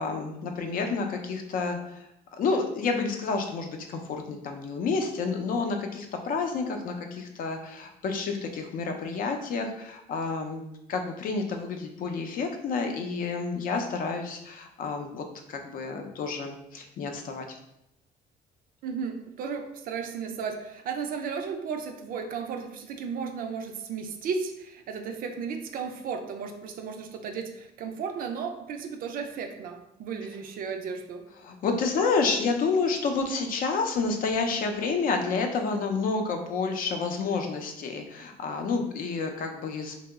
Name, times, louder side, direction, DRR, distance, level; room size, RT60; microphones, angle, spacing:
voice 1, 0.0-10.6 10.9-17.5 31.4-39.9, left 4 dB, 55° left, 4 dB, 0.5 m, -29 dB
voice 2, 18.8-31.2, right 6 dB, 60° right, 5 dB, 0.4 m, -34 dB
2.8 x 2.0 x 3.4 m, 0.82 s
cardioid pair, 110°, 17 cm